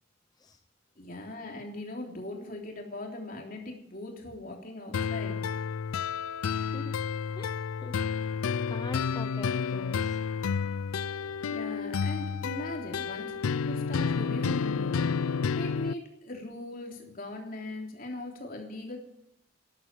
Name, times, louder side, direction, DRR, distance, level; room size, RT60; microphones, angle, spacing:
voice 1, 0.9-5.4 11.5-19.0, left 1 dB, 40° left, 1 dB, 3.5 m, -39 dB
sound 1, 4.9-15.9, left 6 dB, 90° left, 0.4 m, -30 dB
voice 2, 6.5-6.9 7.4-8.4 8.7-10.2 11.2-11.4, left 2 dB, 20° left, 10 dB, 0.5 m, -44 dB
13.0 x 11.5 x 7.7 m, 0.77 s
head